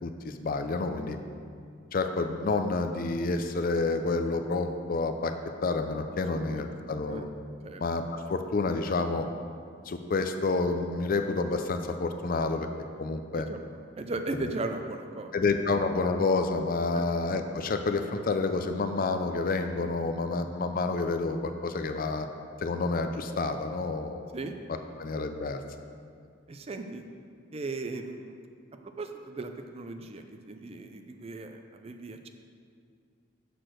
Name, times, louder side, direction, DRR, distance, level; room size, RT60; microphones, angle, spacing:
voice 1, 0.0-1.2 1.9-5.3 5.6-7.4 7.8-9.3 9.9-12.7 13.0-13.5 14.3-14.5 15.3-22.3 22.6-24.2 25.0-25.6, left 3 dB, 45° left, 7 dB, 0.4 m, -29 dB
voice 2, 6.3-7.3 7.6-7.8 13.3-13.6 14.0-15.3 16.9-17.1 24.3-24.5 26.5-27.0 27.5-28.4 28.8-32.3, right 2 dB, 30° right, 6 dB, 0.4 m, -37 dB
6.7 x 6.0 x 6.2 m, 2.2 s
head